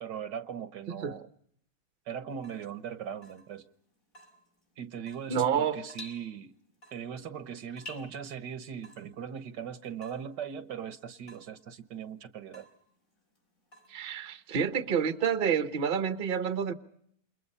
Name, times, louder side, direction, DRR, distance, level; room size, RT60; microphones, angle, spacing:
voice 1, 0.0-1.3 2.1-3.6 4.8-6.5 6.9-12.7, right 8 dB, 75° right, 1.7 m, -39 dB
Water tap faucet / Drip, 2.3-14.5, left 1 dB, 50° left, 4.9 m, -54 dB
voice 2, 5.3-5.8 13.9-16.7, right 7 dB, 35° right, 1.1 m, -28 dB
28.5 x 22.5 x 5.6 m
omnidirectional pair, 1.9 m